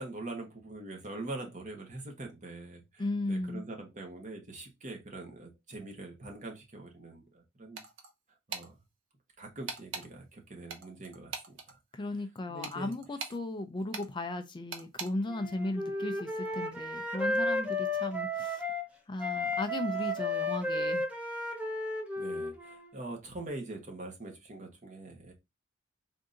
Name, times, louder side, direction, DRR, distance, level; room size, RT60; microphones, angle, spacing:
voice 1, 0.0-7.8 8.5-8.7 9.4-11.8 12.5-12.9 22.2-25.3, right 2 dB, 40° right, 1.1 m, -43 dB
voice 2, 3.0-3.6 11.9-18.7 19.1-21.1, left 2 dB, 25° left, 0.4 m, -36 dB
sound 1, 7.8-8.1 8.5-8.7 9.7-10.1 10.7-11.7 12.6-13.4 13.9-14.1 14.7-15.1, right 5 dB, 70° right, 0.9 m, -40 dB
Wind instrument woodwind instrument, 15.3-18.8 19.2-22.9, left 1 dB, 5° right, 0.7 m, -33 dB
3.7 x 2.6 x 3.6 m
head